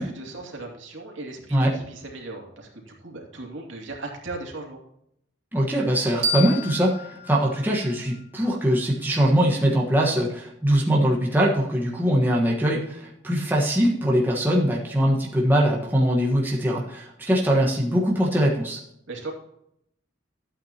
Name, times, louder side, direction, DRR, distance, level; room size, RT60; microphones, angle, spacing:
voice 1, 0.0-4.8 19.1-19.3, right 2 dB, 70° right, 0 dB, 2.6 m, -37 dB
voice 2, 5.5-18.8, equal, 10° right, -3 dB, 1.3 m, -22 dB
sound 1, 6.2-9.0, equal, 30° right, 3.1 m, -32 dB
13.0 x 8.7 x 2.9 m, 0.75 s
head